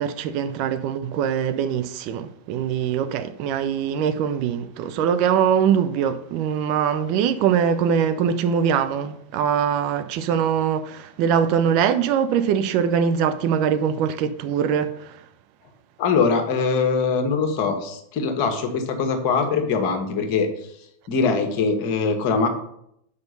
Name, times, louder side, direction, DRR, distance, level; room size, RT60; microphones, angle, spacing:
voice 1, 0.0-15.2, right 8 dB, 45° right, 0.6 m, -22 dB
voice 2, 16.0-20.5 21.1-22.5, left 5 dB, 45° left, 1.4 m, -22 dB
6.1 x 5.2 x 6.7 m
figure-of-eight pair, 90°, 0 cm